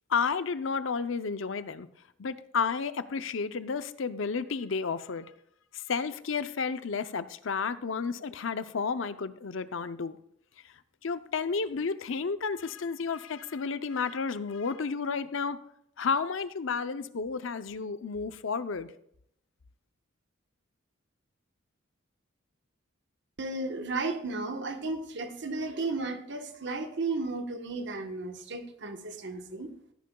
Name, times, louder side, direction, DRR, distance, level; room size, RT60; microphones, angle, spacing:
voice 1, 0.1-1.9 2.2-5.3 5.7-10.2 10.6-10.7 11.0-15.6 16.0-18.9, left 5 dB, 70° left, 13 dB, 0.6 m, -32 dB
voice 2, 23.4-29.7, right 3 dB, 60° right, 6 dB, 1.2 m, -34 dB
16.5 x 10.5 x 2.3 m, 0.70 s
head